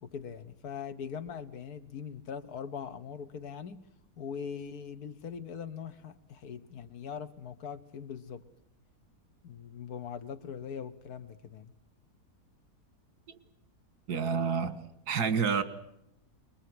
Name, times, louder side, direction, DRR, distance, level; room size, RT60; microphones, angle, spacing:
voice 1, 0.0-3.9 4.2-8.5 9.4-11.7, left 7 dB, 70° left, 1.6 m, -41 dB
voice 2, 14.1-15.6, right 6 dB, 80° right, 2.1 m, -29 dB
24.5 x 21.5 x 7.9 m
omnidirectional pair, 1.7 m